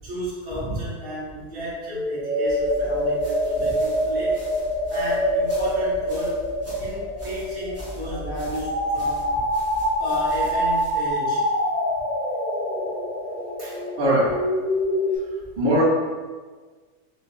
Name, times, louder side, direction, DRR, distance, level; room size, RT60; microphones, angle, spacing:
voice 1, 0.0-4.4 4.9-6.4 6.8-9.2 10.0-11.4 13.6-13.8, equal, 65° right, -11 dB, 2.2 m, -32 dB
sound 1, 1.9-15.2, equal, 25° left, 0.7 m, -25 dB
sound 2, 2.5-11.1, equal, 10° right, 0.9 m, -41 dB
voice 2, 14.0-14.3 15.6-15.8, equal, 35° right, -11 dB, 1.5 m, -19 dB
6.0 x 2.6 x 2.7 m, 1.4 s
omnidirectional pair, 1.7 m